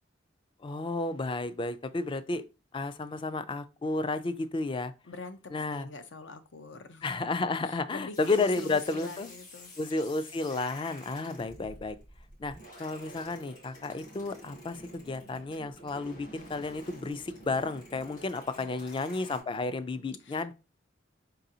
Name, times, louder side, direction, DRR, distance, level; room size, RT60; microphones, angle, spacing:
voice 1, 0.6-2.4 2.7-4.9 5.5-5.9 7.0-9.3 9.8-12.0 12.4-12.5 12.8-20.5, left 3 dB, 25° left, 0.4 m, -32 dB
voice 2, 5.0-7.1 7.6-9.7 11.2-11.5 18.6-20.5, left 3 dB, 70° left, 0.6 m, -45 dB
sound 1, 8.1-19.4, equal, 45° left, 1.9 m, -49 dB
4.7 x 3.9 x 2.8 m
head